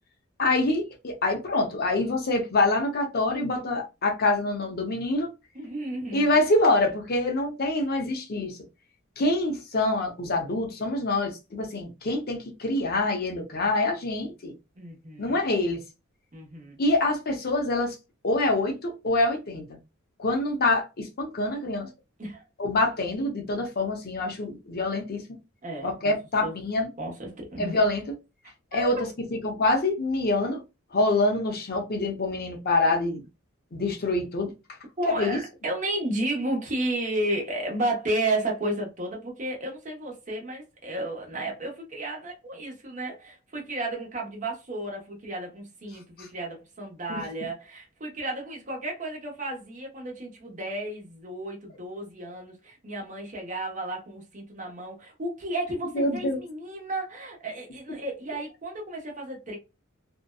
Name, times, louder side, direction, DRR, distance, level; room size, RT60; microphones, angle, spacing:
voice 1, 0.4-5.3 6.1-8.6 9.2-14.5 15.2-15.8 16.8-18.0 18.2-19.8 20.2-21.9 22.6-25.2 25.8-26.9 27.6-28.0 28.7-30.6 30.9-33.2 33.7-34.5 35.1-35.4 46.2-46.3 55.9-56.4, left 2 dB, 50° left, 0.6 m, -25 dB
voice 2, 5.5-6.2 14.8-15.4 16.3-16.8 22.2-22.4 25.6-26.1 26.4-26.5 27.0-27.7 28.7-29.1 35.0-59.6, right 1 dB, 40° right, 0.9 m, -33 dB
2.6 x 2.2 x 2.2 m
head